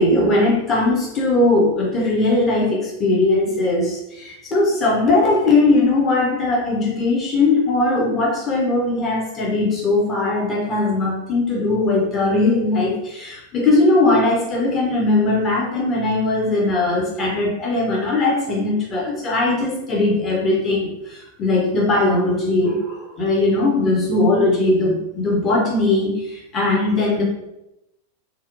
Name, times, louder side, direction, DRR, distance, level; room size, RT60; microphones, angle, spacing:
voice 1, 0.0-27.2, left 2 dB, 25° left, -3 dB, 0.6 m, -19 dB
2.7 x 2.0 x 2.4 m, 0.89 s
figure-of-eight pair, 90°, 0 cm